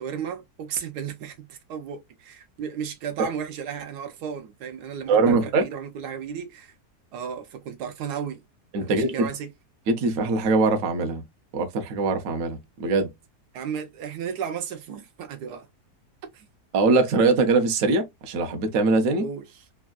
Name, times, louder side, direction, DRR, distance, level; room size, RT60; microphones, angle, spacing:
voice 1, 0.0-6.7 7.1-8.4 8.8-9.5 13.5-15.7 16.3-16.5 19.2-19.6, right 7 dB, 80° right, 1.2 m, -34 dB
voice 2, 5.1-5.6 8.7-9.3 9.9-11.2 11.5-13.1 16.7-19.2, right 3 dB, 60° right, 1.0 m, -22 dB
3.4 x 2.3 x 2.2 m
omnidirectional pair, 1.7 m